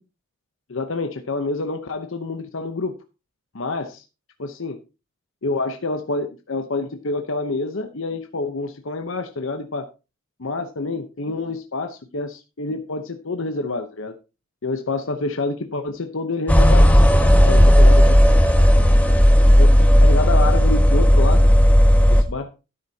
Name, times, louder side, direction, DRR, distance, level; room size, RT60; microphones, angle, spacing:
voice 1, 0.7-3.0 3.5-4.0 4.4-4.8 5.4-9.9 10.4-14.1 14.6-16.9 17.5-18.1 19.6-21.5 22.1-22.5, left 3 dB, 65° left, 6 dB, 0.9 m, -27 dB
sound 1, 16.5-22.2, equal, 5° left, 1.1 m, -13 dB
12.5 x 9.7 x 2.8 m, 0.29 s
head